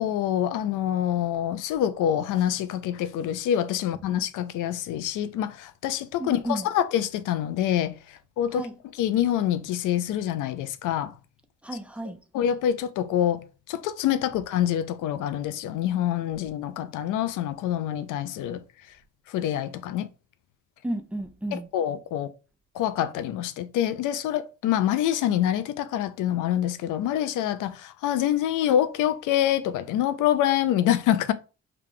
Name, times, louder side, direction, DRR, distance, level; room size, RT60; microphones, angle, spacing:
voice 1, 0.0-8.7 9.0-11.1 12.3-18.6 19.3-20.1 21.5-22.3 22.7-31.3, left 11 dB, 85° left, 0.5 m, -26 dB
voice 2, 6.2-6.7 8.5-8.7 11.6-12.2 20.8-21.7, right 1 dB, 5° right, 0.7 m, -32 dB
4.7 x 2.4 x 3.7 m
cardioid pair, 90°, 30 cm